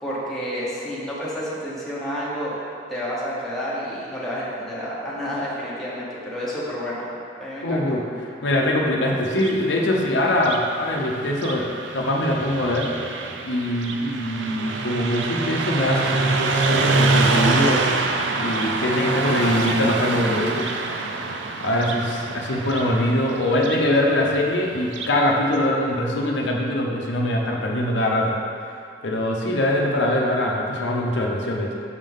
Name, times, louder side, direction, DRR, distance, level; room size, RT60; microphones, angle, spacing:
voice 1, 0.0-2.5 2.9-7.1 7.4-8.0, equal, ahead, -9 dB, 1.2 m, -30 dB
voice 2, 7.6-8.0 8.4-12.9 13.4-17.8 18.3-20.7 21.6-28.4 29.0-31.8, left 1 dB, 80° left, -1 dB, 0.7 m, -23 dB
Car passing by, 9.2-25.2, right 3 dB, 90° right, 0.5 m, -26 dB
6.4 x 5.4 x 3.6 m, 2.4 s
head